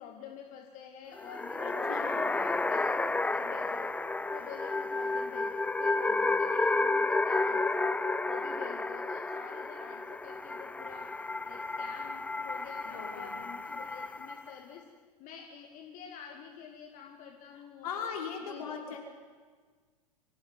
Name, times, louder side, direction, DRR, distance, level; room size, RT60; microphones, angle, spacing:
voice 1, 0.0-1.9 2.3-3.9 4.3-14.8 15.2-18.1 18.4-19.0, left 8 dB, 40° left, 3 dB, 2.5 m, -49 dB
sound 1, 1.2-14.5, left 3 dB, 5° left, 0.7 m, -31 dB
voice 2, 1.6-2.4 6.1-6.3 12.8-13.4 17.8-19.0, left 6 dB, 65° left, 1 dB, 5.9 m, -39 dB
24.5 x 16.5 x 9.5 m, 1.5 s
figure-of-eight pair, 95°, 20 cm